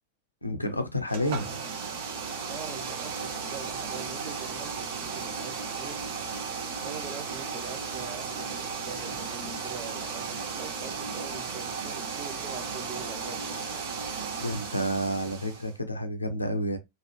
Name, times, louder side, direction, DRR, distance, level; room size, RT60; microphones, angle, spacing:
voice 1, 0.4-1.5 14.4-16.8, equal, 85° left, 0.5 m, -30 dB
sound 1, 1.1-15.7, right 5 dB, 60° right, 1.2 m, -35 dB
voice 2, 2.5-6.0 6.8-13.7, right 5 dB, 25° right, 0.6 m, -43 dB
3.1 x 2.1 x 3.0 m
figure-of-eight pair, 90°, 0 cm